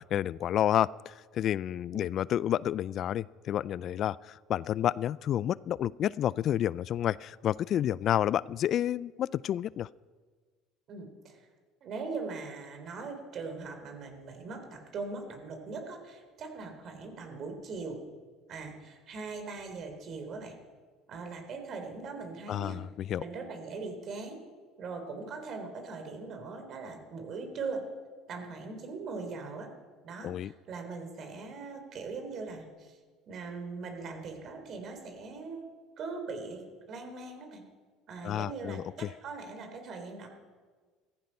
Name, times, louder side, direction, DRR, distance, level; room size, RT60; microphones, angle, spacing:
voice 1, 0.0-9.9 22.5-23.2 30.2-30.5 38.2-39.1, left 11 dB, 55° left, 22 dB, 0.3 m, -30 dB
voice 2, 10.9-11.4 11.8-18.0 18.5-20.6 21.1-22.8 23.2-24.4 24.8-27.8 28.3-29.7 30.0-33.0 33.3-35.7 36.0-36.6 36.9-37.6 38.1-40.3, right 4 dB, 50° right, 5 dB, 3.6 m, -40 dB
16.0 x 14.5 x 5.5 m, 1.5 s
supercardioid pair, 90°, 0 cm